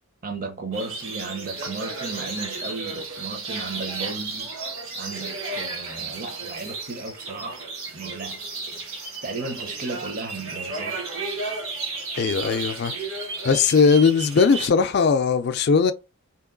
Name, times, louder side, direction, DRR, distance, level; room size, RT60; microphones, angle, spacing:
voice 1, 0.2-4.5 5.0-7.6 7.9-8.8 9.2-11.0, right 3 dB, 40° right, 0.7 m, -34 dB
sound 1, 0.7-14.7, right 3 dB, 70° right, 1.1 m, -33 dB
voice 2, 12.2-12.9 13.4-15.9, left 5 dB, 50° left, 0.4 m, -19 dB
3.0 x 2.9 x 3.8 m
head